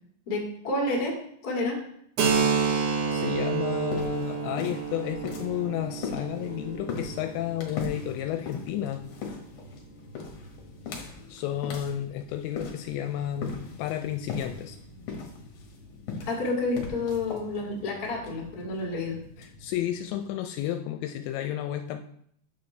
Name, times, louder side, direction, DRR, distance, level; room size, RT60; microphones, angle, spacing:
voice 1, 0.2-1.2 1.4-1.8 16.2-19.2, left 2 dB, 35° left, -3 dB, 1.5 m, -29 dB
Keyboard (musical), 2.2-9.5, right 6 dB, 75° right, 1.8 m, -30 dB
sound 1, 3.0-20.5, left 4 dB, 60° left, 2.4 m, -40 dB
voice 2, 3.1-9.0 10.9-14.8 19.4-22.0, left 12 dB, 85° left, 5 dB, 2.7 m, -32 dB
9.7 x 6.9 x 3.2 m, 0.69 s
omnidirectional pair, 5.2 m